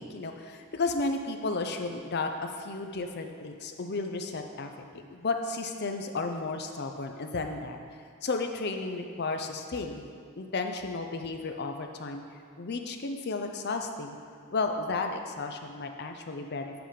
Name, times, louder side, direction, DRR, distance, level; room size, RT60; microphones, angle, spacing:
voice 1, 0.0-4.7 5.1-7.8 8.2-10.1 10.4-12.2 12.6-14.2 14.5-16.7, left 3 dB, 45° left, 5 dB, 0.6 m, -33 dB
8.0 x 4.9 x 5.0 m, 2.2 s
head